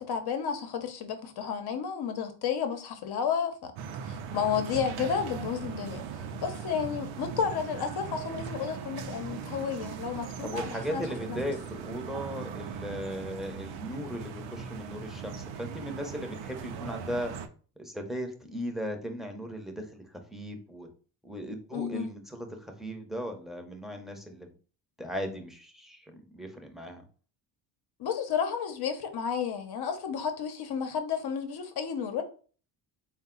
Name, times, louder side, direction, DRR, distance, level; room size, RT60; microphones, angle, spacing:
voice 1, 0.0-3.7 4.0-6.1 6.4-11.4 21.7-22.1 28.0-32.2, left 7 dB, 50° left, 0.9 m, -32 dB
sound 1, 3.8-17.5, right 6 dB, 65° right, 0.7 m, -39 dB
voice 2, 10.4-17.3 17.8-20.9 21.2-24.5 25.0-27.0, equal, ahead, 0.8 m, -37 dB
3.9 x 2.3 x 3.8 m
supercardioid pair, 85°, 49 cm